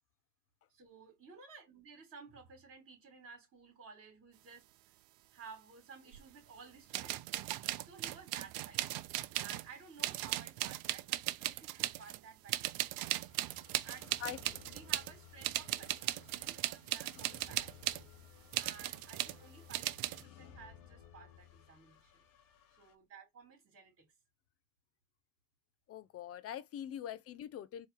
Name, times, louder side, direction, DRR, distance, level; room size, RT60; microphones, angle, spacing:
voice 1, 0.7-4.6 5.3-7.3 7.8-8.9 9.4-12.7 13.8-17.8 18.6-22.3 22.8-24.1, right 5 dB, 35° right, 2.9 m, -55 dB
sound 1, 6.1-6.2 6.9-9.7 10.0-12.2 12.5-15.1 15.4-18.0 18.5-19.4 19.7-20.2, right 16 dB, 60° right, 0.7 m, -37 dB
sound 2, 13.3-22.9, left 10 dB, 50° left, 1.1 m, -58 dB
voice 2, 25.9-27.9, left 10 dB, 35° left, 0.5 m, -43 dB
4.3 x 3.1 x 3.7 m
cardioid pair, 125°, 42 cm